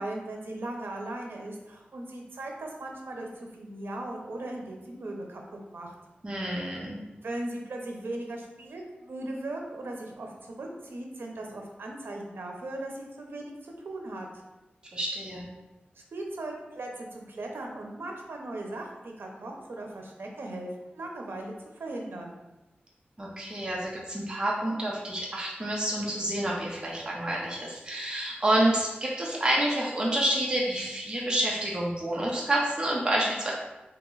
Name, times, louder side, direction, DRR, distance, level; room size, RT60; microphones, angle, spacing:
voice 1, 0.0-5.9 7.2-14.3 16.1-22.3, right 1 dB, 85° right, 1 dB, 0.7 m, -38 dB
voice 2, 6.2-7.0 14.9-15.5 23.2-33.5, right 1 dB, 25° right, -4 dB, 0.7 m, -28 dB
2.9 x 2.9 x 3.8 m, 1.0 s
wide cardioid pair, 80°, 4 cm